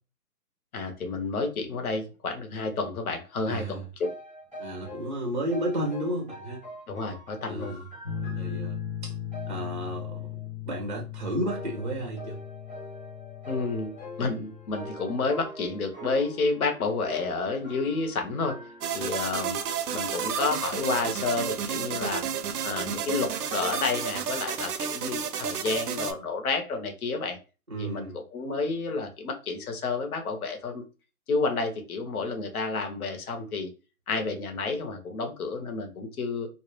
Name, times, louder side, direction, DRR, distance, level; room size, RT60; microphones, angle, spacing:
voice 1, 0.7-4.1 6.9-7.7 13.5-13.9 14.2-18.6 18.9-19.6 19.9-22.3 22.6-27.4 27.8-30.8 31.3-33.7 34.1-36.5, left 4 dB, 65° left, 5 dB, 0.7 m, -30 dB
voice 2, 3.5-3.8 4.6-6.6 7.4-7.8 8.2-8.8 9.0-9.1 9.5-10.3 10.7-12.4 27.7-28.2, right 1 dB, 35° right, -1 dB, 0.4 m, -32 dB
sound 1, 4.0-5.2 5.5-9.0 9.3-10.5 11.5-19.0, equal, 5° left, 0.8 m, -44 dB
sound 2, 8.0-15.3, left 9 dB, 40° left, 0.4 m, -38 dB
sound 3, 18.8-26.1, right 8 dB, 85° right, 0.5 m, -31 dB
2.1 x 2.0 x 3.0 m, 0.32 s
hypercardioid pair, 155°, 46 cm